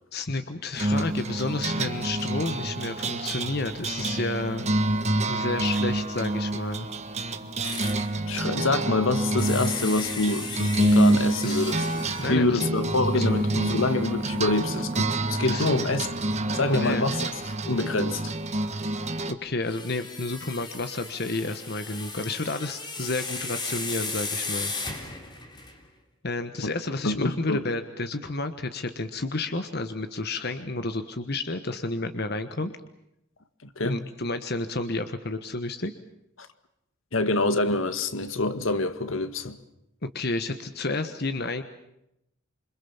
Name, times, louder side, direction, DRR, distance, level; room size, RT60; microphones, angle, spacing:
voice 1, 0.1-4.6 5.3-6.9 11.4-12.7 13.1-13.3 15.4-15.7 16.7-17.1 19.3-24.7 26.2-32.7 33.8-35.9 40.0-41.6, left 2 dB, 50° left, 1.4 m, -31 dB
sound 1, 0.8-19.3, right 1 dB, 35° right, 1.6 m, -27 dB
sound 2, 7.6-8.1 9.4-12.4 13.1-13.2 13.6-13.7 16.0-16.1 17.9-18.0 19.6-25.8, left 3 dB, 20° left, 3.6 m, -36 dB
voice 2, 8.3-11.8 12.3-16.2 16.5-17.2 17.7-18.3 26.6-26.7 27.0-27.6 33.8-34.0 37.1-39.6, left 2 dB, 75° left, 1.9 m, -26 dB
27.5 x 25.5 x 7.3 m
head